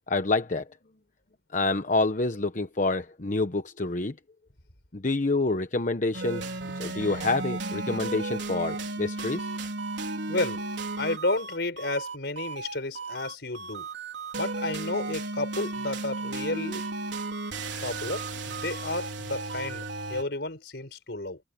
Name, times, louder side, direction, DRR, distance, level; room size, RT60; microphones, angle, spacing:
voice 1, 0.1-0.6 1.5-4.1 4.9-6.5 6.8-9.5, left 3 dB, 45° left, 1.0 m, -27 dB
sound 1, 6.1-20.2, right 3 dB, 85° right, 4.3 m, -34 dB
voice 2, 10.3-10.6 11.0-13.9 14.4-16.8 17.8-21.4, left 2 dB, 65° left, 5.0 m, -32 dB
head